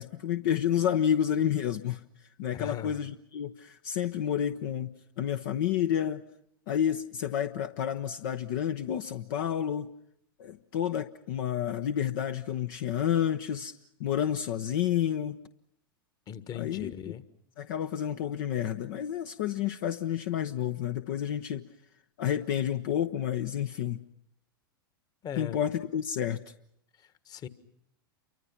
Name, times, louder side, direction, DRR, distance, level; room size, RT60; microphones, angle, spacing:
voice 1, 0.0-2.1 2.4-6.2 6.7-9.9 10.4-13.7 14.0-15.4 16.5-17.1 17.6-21.7 22.2-24.0 25.4-26.4, left 10 dB, 60° left, 8 dB, 0.9 m, -30 dB
voice 2, 2.5-3.0 16.3-17.2 25.2-25.6 27.0-27.5, left 9 dB, 35° left, 14 dB, 1.5 m, -39 dB
28.5 x 24.5 x 5.9 m, 0.72 s
hypercardioid pair, 95°, 12 cm